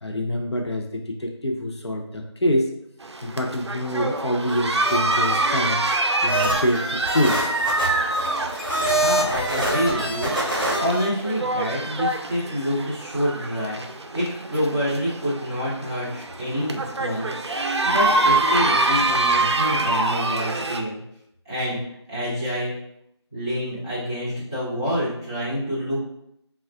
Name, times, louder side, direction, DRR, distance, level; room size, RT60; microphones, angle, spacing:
voice 1, 0.0-2.7 3.2-5.8 6.2-7.5, equal, 70° left, 1 dB, 0.6 m, -25 dB
sound 1, 3.0-20.8, right 2 dB, 70° right, 0.5 m, -25 dB
sound 2, 4.5-5.5 6.3-11.1, right 1 dB, 50° right, 0.9 m, -26 dB
voice 2, 8.8-10.3 10.8-17.3 17.8-21.0 21.4-21.8 22.1-22.7 23.3-26.1, equal, 10° left, -13 dB, 0.8 m, -27 dB
3.5 x 2.3 x 3.4 m, 0.76 s
figure-of-eight pair, 175°, 15 cm